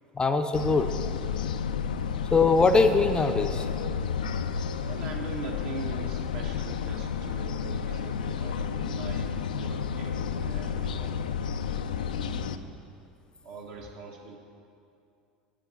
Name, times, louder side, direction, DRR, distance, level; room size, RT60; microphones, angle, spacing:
voice 1, 0.2-0.9 2.3-3.6, left 4 dB, 20° left, 7 dB, 0.5 m, -22 dB
sound 1, 0.5-12.6, left 7 dB, 85° left, 0.3 m, -31 dB
voice 2, 4.8-11.2 12.1-12.7 13.4-14.4, right 4 dB, 60° right, 0 dB, 1.6 m, -42 dB
7.6 x 7.6 x 6.4 m, 2.5 s
hypercardioid pair, 80°, 4 cm